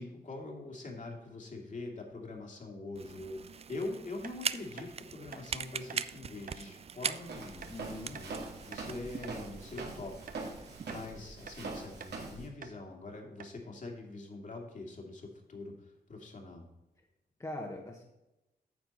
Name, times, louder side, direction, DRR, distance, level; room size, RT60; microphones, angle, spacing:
voice 1, 0.0-10.2 10.6-16.6, left 2 dB, 50° left, 1 dB, 2.3 m, -44 dB
sound 1, 2.9-11.1, right 6 dB, 35° right, 0.4 m, -41 dB
sound 2, 4.2-4.4 4.8-4.9 5.3-5.5 5.9-6.0 6.5-6.6 7.1-7.2 7.6-7.8 8.1-8.3 8.7-9.4 9.8-9.9 10.3-10.4 10.9-11.1 11.5-11.6 12.0-12.2 12.6-12.8 13.1-13.2 13.4-13.6, right 6 dB, 55° right, 0.8 m, -48 dB
Walk footsteps, 7.2-12.5, right 3 dB, 80° right, 2.3 m, -43 dB
voice 2, 7.7-8.2 17.4-18.0, left 1 dB, 20° left, 0 dB, 1.2 m, -41 dB
9.5 x 6.9 x 4.1 m, 0.95 s
wide cardioid pair, 110°, 17 cm